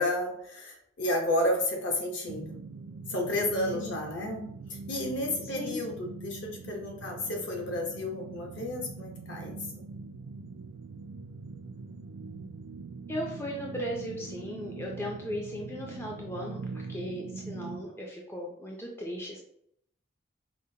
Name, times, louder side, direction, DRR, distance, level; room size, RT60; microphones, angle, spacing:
voice 1, 0.0-2.5 3.1-9.8, left 1 dB, 65° left, 0 dB, 0.9 m, -32 dB
sound 1, 2.3-17.8, right 4 dB, 85° right, 0.3 m, -42 dB
voice 2, 13.1-19.4, equal, 10° left, -1 dB, 0.4 m, -37 dB
4.9 x 2.1 x 2.7 m, 0.72 s
head